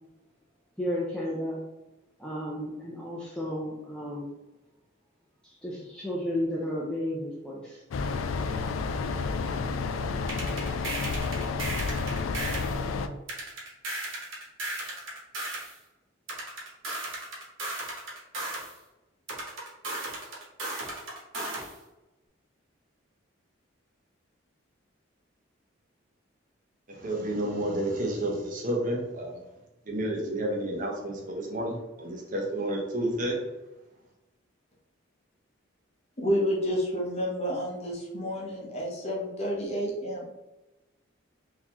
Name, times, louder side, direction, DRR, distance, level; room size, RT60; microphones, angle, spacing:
voice 1, 0.8-1.6 2.2-4.3 5.4-7.8, left 1 dB, 5° left, -6 dB, 0.5 m, -33 dB
sound 1, 7.9-13.1, left 4 dB, 85° left, 0.3 m, -30 dB
sound 2, 10.3-12.8 13.3-15.7 16.3-18.7 19.3-21.7, right 2 dB, 80° right, 1.1 m, -35 dB
voice 2, 26.9-29.4 29.9-33.4, right 1 dB, 40° right, -1 dB, 0.8 m, -30 dB
voice 3, 36.2-40.3, equal, 35° left, -2 dB, 0.8 m, -30 dB
3.9 x 2.8 x 2.9 m, 1.0 s
head